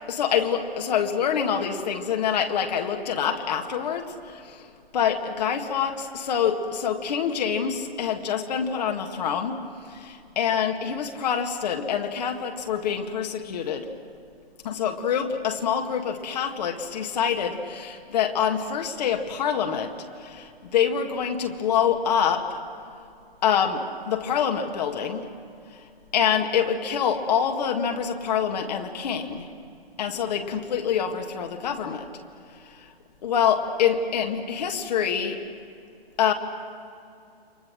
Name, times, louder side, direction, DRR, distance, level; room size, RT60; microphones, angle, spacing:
voice 1, 0.1-4.7 4.9-13.9 14.6-22.6 23.4-25.3 25.7-25.8 26.1-29.5 30.0-32.1 32.5-32.9 33.2-35.4 36.2-36.3, left 8 dB, 40° left, 4 dB, 2.0 m, -26 dB
29.5 x 25.0 x 6.3 m, 2.5 s
figure-of-eight pair, 125°, 31 cm